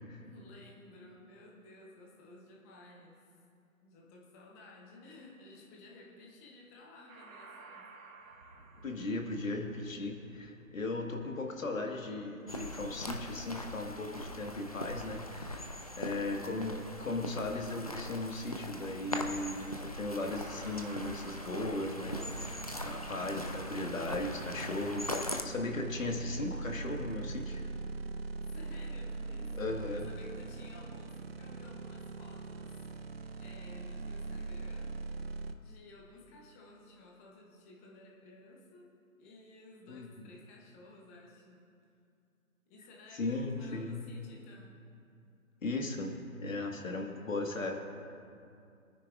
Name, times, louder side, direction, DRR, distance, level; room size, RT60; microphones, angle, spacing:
voice 1, 0.2-3.2 3.8-7.9 28.5-35.0 35.6-38.9 39.2-41.6 42.7-44.8 46.8-47.8, left 2 dB, 10° left, -2 dB, 0.8 m, -55 dB
sound 1, 7.1-14.3 19.5-19.8 20.1-21.9, right 3 dB, 75° right, 1.5 m, -56 dB
voice 2, 8.8-27.7 29.5-30.0 39.9-40.1 43.1-44.0 45.6-47.8, left 2 dB, 65° left, 2 dB, 1.8 m, -37 dB
sound 2, 12.5-25.4, left 1 dB, 30° left, 0.4 m, -41 dB
sound 3, 22.0-35.5, right 3 dB, 45° right, 0.6 m, -42 dB
25.0 x 9.8 x 2.5 m, 2.5 s
figure-of-eight pair, 145°, 42 cm